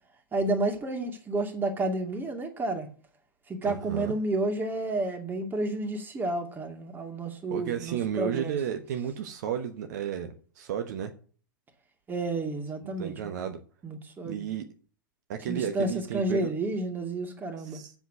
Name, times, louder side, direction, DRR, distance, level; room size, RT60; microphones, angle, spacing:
voice 1, 0.3-2.9 3.5-8.6 12.1-13.3 13.8-14.5 15.5-17.8, right 2 dB, 15° right, 2.3 m, -31 dB
voice 2, 3.6-4.1 7.5-11.1 12.8-13.6 14.2-14.7 15.3-16.5 17.6-17.9, right 9 dB, 55° right, 1.2 m, -33 dB
8.1 x 7.2 x 8.1 m
figure-of-eight pair, 95°, 11 cm